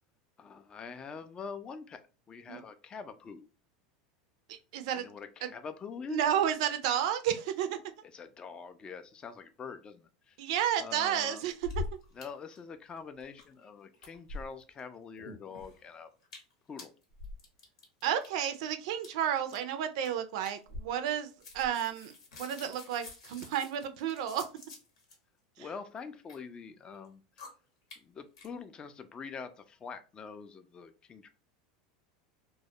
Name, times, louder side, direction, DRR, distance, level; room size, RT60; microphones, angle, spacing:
voice 1, 0.4-3.5 4.9-6.2 8.1-10.4 10.8-11.4 12.1-16.1 16.7-16.9 25.6-27.4 28.0-31.3, left 5 dB, 25° left, 0.3 m, -45 dB
voice 2, 4.5-5.1 5.4-5.5 6.1-7.8 10.4-11.7 18.0-22.1 22.4-24.5 25.6-25.7, right 9 dB, 70° right, 0.4 m, -31 dB
sound 1, 11.5-12.2 12.5-12.6 12.9-13.7 13.9-14.8 15.2-15.8 16.2-16.5 16.8-18.3 19.0-19.1 19.5-19.7 20.0-20.1 20.4-21.2 21.4-25.1 25.9-26.4 26.9-27.1 27.4-27.5 27.9-28.0 28.4-28.5, left 4 dB, 80° left, 0.8 m, -44 dB
2.2 x 2.1 x 2.7 m
hypercardioid pair, 100°, 3 cm